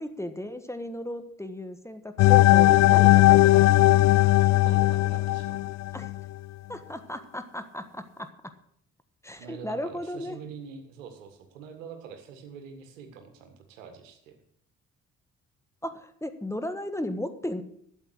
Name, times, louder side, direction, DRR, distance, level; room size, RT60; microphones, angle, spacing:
voice 1, 0.0-3.7 5.9-6.1 6.7-8.3 9.2-10.4 15.8-17.6, left 1 dB, 5° left, 9 dB, 1.4 m, -35 dB
sound 1, 2.2-6.2, left 17 dB, 45° left, 0.4 m, -18 dB
voice 2, 4.6-5.6 6.7-6.8 9.4-14.4, right 6 dB, 75° right, 6 dB, 1.8 m, -44 dB
13.0 x 8.4 x 6.4 m, 0.70 s
figure-of-eight pair, 40°, 39 cm